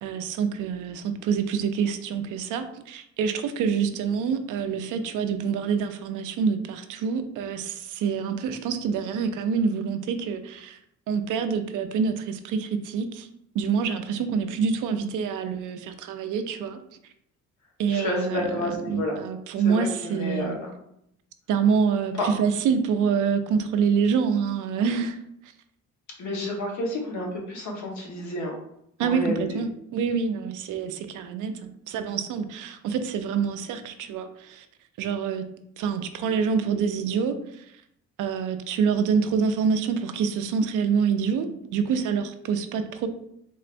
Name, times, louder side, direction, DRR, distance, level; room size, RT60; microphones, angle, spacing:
voice 1, 0.0-10.8 11.1-13.3 13.5-16.8 17.8-20.6 21.5-25.2 29.0-34.7 35.0-35.4 35.8-37.6 38.2-43.1, right 6 dB, 85° right, 8 dB, 0.5 m, -26 dB
voice 2, 17.9-19.1 19.6-20.7 22.2-22.3 26.2-28.6 29.0-29.4, left 1 dB, 70° left, -1 dB, 1.2 m, -30 dB
3.7 x 3.2 x 2.5 m, 0.76 s
cardioid pair, 90°, 30 cm